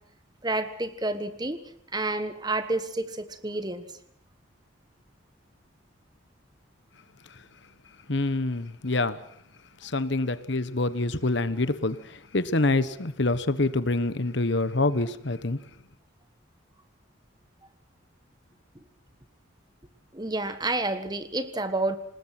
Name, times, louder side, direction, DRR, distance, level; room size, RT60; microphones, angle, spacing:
voice 1, 0.4-1.6 1.9-3.9 20.1-22.0, right 2 dB, 20° right, 1.5 m, -29 dB
voice 2, 8.1-9.2 9.8-15.6, left 2 dB, 60° left, 1.2 m, -26 dB
27.5 x 19.5 x 6.0 m
head